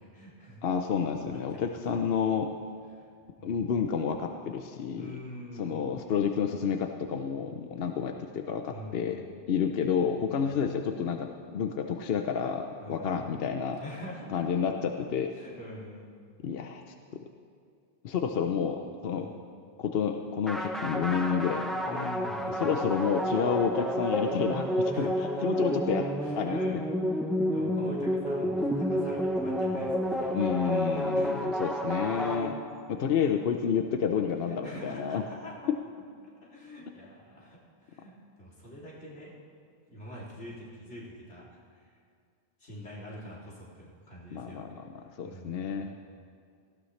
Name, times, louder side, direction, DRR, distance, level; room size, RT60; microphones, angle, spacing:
voice 1, 0.0-0.6 1.3-2.1 2.9-3.1 3.4-3.7 4.9-5.8 8.7-9.3 12.8-13.3 13.8-14.4 15.3-16.1 19.1-19.4 21.8-23.4 24.2-24.4 24.9-25.6 26.2-27.0 27.3-31.5 34.4-35.7 36.4-39.3 39.9-42.0 42.6-46.0, equal, 80° left, -6 dB, 3.2 m, -46 dB
voice 2, 0.6-2.5 3.4-5.2 5.6-9.2 9.5-13.8 14.3-15.3 16.4-16.8 18.0-19.3 19.8-22.0 22.6-25.1 25.4-26.0 26.4-26.8 30.3-32.6 32.9-35.2 35.7-35.8 44.3-44.7 45.2-45.9, left 7 dB, 65° left, 5 dB, 0.8 m, -30 dB
sound 1, 20.5-33.0, equal, ahead, 0.6 m, -30 dB
18.0 x 14.5 x 3.2 m, 2.2 s
omnidirectional pair, 1.1 m